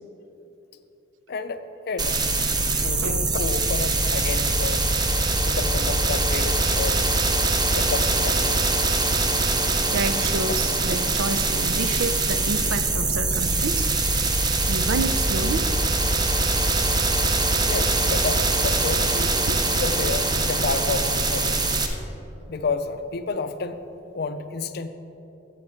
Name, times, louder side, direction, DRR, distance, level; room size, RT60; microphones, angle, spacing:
voice 1, 1.3-2.1 2.8-4.9 5.4-7.1 7.7-8.6 17.6-19.4 19.6-21.5 22.5-23.8 24.1-24.9, left 4 dB, 55° left, 10 dB, 0.5 m, -30 dB
sound 1, 2.0-21.9, right 3 dB, 20° right, 0.6 m, -23 dB
voice 2, 9.9-14.0 14.7-15.7 19.5-19.6, right 4 dB, 85° right, 10 dB, 0.5 m, -29 dB
13.0 x 7.4 x 3.7 m, 3.0 s
head